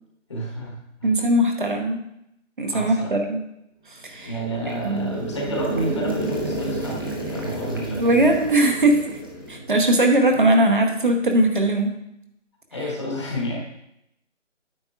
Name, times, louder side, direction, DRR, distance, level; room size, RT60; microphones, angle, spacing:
voice 1, 0.3-1.1 2.7-3.2 4.2-7.0 7.3-8.3 10.3-10.4 12.7-13.6, right 1 dB, 25° left, -2 dB, 1.2 m, -30 dB
voice 2, 1.0-2.0 2.6-3.4 4.0-4.4 4.8-5.2 8.0-9.1 9.5-11.9, right 1 dB, 40° right, 3 dB, 1.0 m, -20 dB
sound 1, 4.1-10.1, right 1 dB, 20° right, 0.7 m, -31 dB
9.6 x 7.8 x 2.4 m, 0.80 s
figure-of-eight pair, 165°, 37 cm